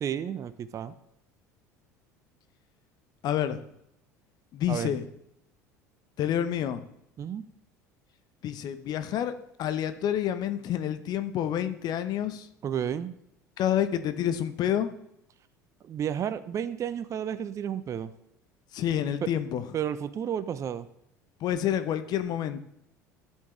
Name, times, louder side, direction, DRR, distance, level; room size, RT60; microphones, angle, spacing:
voice 1, 0.0-0.9 4.7-4.9 7.2-7.5 12.6-13.1 15.8-18.1 19.2-19.3 19.7-20.9, right 9 dB, 35° right, 13 dB, 0.6 m, -32 dB
voice 2, 3.2-3.6 4.5-5.0 6.2-6.8 8.4-9.3 9.6-12.5 13.6-14.9 18.7-19.6 21.4-22.6, left 10 dB, 45° left, 11 dB, 0.9 m, -28 dB
15.5 x 7.4 x 3.3 m, 0.77 s
figure-of-eight pair, 65°, 9 cm